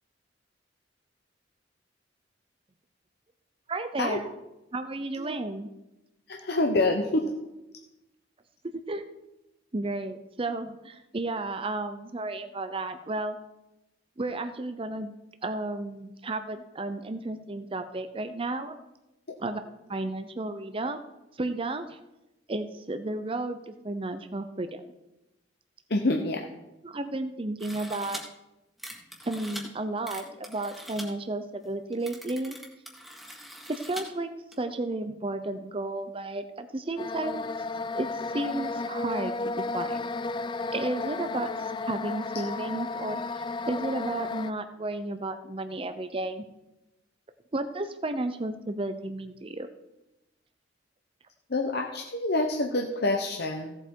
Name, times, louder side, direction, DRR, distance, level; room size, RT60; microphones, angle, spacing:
voice 1, 3.7-4.3 4.7-5.7 8.7-9.0 9.7-13.4 14.2-15.1 15.4-18.8 19.4-19.6 19.9-21.0 21.4-22.0 22.5-24.8 26.8-28.2 29.3-32.6 33.7-34.3 34.6-37.5 37.9-39.3 39.7-40.1 40.7-43.2 43.7-46.4 47.5-49.7, right 2 dB, 30° right, 9 dB, 0.6 m, -33 dB
voice 2, 6.3-7.3 25.9-26.5 51.5-53.8, left 2 dB, 55° left, 2 dB, 0.9 m, -27 dB
sound 1, 27.6-28.2 28.8-29.6 30.1-31.0 31.6-31.7 31.9-34.0 34.5-34.6, equal, ahead, 1.7 m, -42 dB
sound 2, 37.0-44.5, left 3 dB, 25° left, 0.3 m, -33 dB
16.0 x 7.7 x 4.6 m, 0.98 s
head